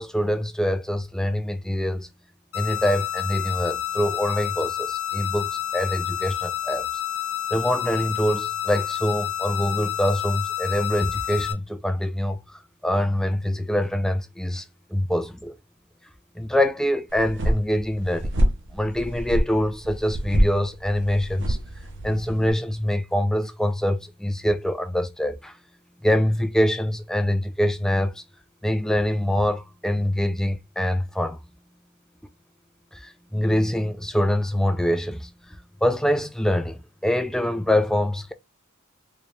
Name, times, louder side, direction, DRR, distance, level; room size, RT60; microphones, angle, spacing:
voice 1, 0.0-2.1 2.5-6.8 7.5-14.6 14.9-15.6 16.4-18.3 18.7-21.6 22.0-25.5 26.0-28.2 28.6-31.4 32.9-35.3 35.8-38.3, left 1 dB, 5° left, 0.3 m, -24 dB
sound 1, 2.5-11.5, left 11 dB, 80° left, 0.8 m, -29 dB
sound 2, 17.1-22.5, equal, 55° right, 0.8 m, -26 dB
4.0 x 2.3 x 3.1 m
head